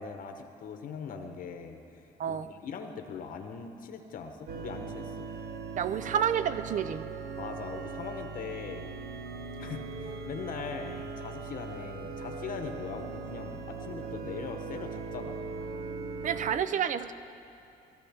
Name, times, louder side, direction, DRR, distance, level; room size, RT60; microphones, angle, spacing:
voice 1, 0.0-5.3 7.4-8.9 9.6-15.4, left 5 dB, 60° left, 6 dB, 0.9 m, -41 dB
sound 1, 4.5-16.6, right 4 dB, 75° right, 0.8 m, -40 dB
voice 2, 5.8-7.1 16.2-17.1, right 8 dB, 50° right, 13 dB, 0.5 m, -29 dB
14.0 x 13.5 x 3.5 m, 2.8 s
cardioid pair, 95°, 16 cm